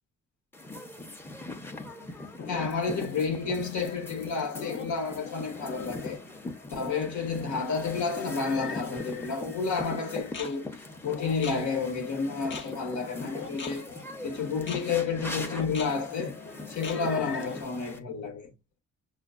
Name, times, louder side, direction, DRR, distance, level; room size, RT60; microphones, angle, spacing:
sound 1, 0.5-18.0, left 2 dB, 10° left, 0.7 m, -41 dB
sound 2, 1.7-17.6, left 5 dB, 40° left, 0.7 m, -42 dB
voice 1, 2.5-6.2 6.7-10.7 11.0-13.9 14.2-16.4 16.7-18.5, left 5 dB, 70° left, 1.1 m, -30 dB
5.7 x 2.2 x 2.4 m
cardioid pair, 90°, 30 cm